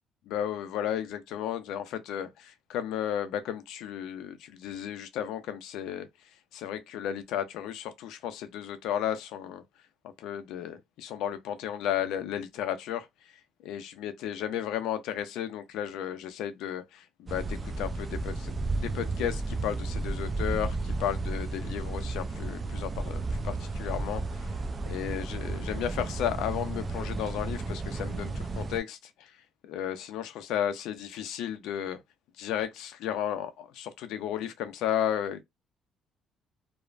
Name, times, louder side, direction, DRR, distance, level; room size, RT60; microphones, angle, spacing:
voice 1, 0.3-9.6 10.0-24.5 24.8-29.4 29.6-32.0 32.4-35.4, left 10 dB, 85° left, 0.5 m, -34 dB
sound 1, 17.3-28.8, right 3 dB, 30° right, 0.4 m, -33 dB
3.1 x 2.1 x 2.4 m
cardioid pair, 110°, 0 cm